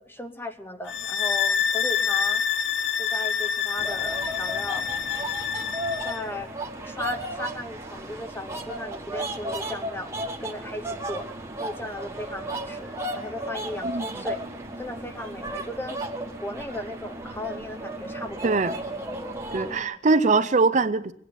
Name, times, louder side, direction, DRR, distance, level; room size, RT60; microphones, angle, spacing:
voice 1, 0.0-2.4 3.0-4.9 6.0-6.6 6.8-10.1 10.4-11.3 11.6-14.4 14.8-16.0 16.4-18.7 19.7-20.0, left 1 dB, 10° left, 8 dB, 0.9 m, -36 dB
sound 1, 0.9-6.3, left 7 dB, 70° left, 0.5 m, -27 dB
sound 2, 3.8-19.8, right 1 dB, 15° right, 1.4 m, -34 dB
voice 2, 19.5-21.1, right 3 dB, 40° right, 11 dB, 0.5 m, -22 dB
22.0 x 9.1 x 6.9 m, 0.69 s
head